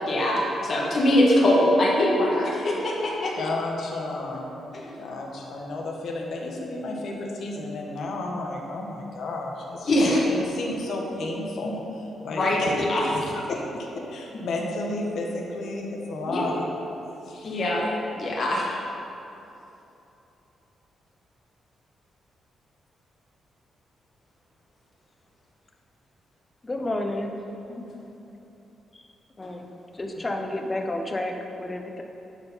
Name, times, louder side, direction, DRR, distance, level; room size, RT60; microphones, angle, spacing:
voice 1, 0.0-3.3 4.7-4.9 9.9-10.2 12.3-12.6 12.9-13.0 16.3-16.4 17.4-17.8 18.2-18.8 27.7-27.8, left 1 dB, 40° left, -3 dB, 1.6 m, -22 dB
voice 2, 3.4-4.5 4.9-16.6 17.2-17.6, left 2 dB, 60° left, 0 dB, 1.2 m, -32 dB
voice 3, 26.6-27.3 28.9-29.1 29.4-29.7 29.9-32.0, left 1 dB, 15° left, 3 dB, 0.6 m, -30 dB
10.5 x 4.8 x 5.5 m, 2.9 s
wide cardioid pair, 175°, 0 cm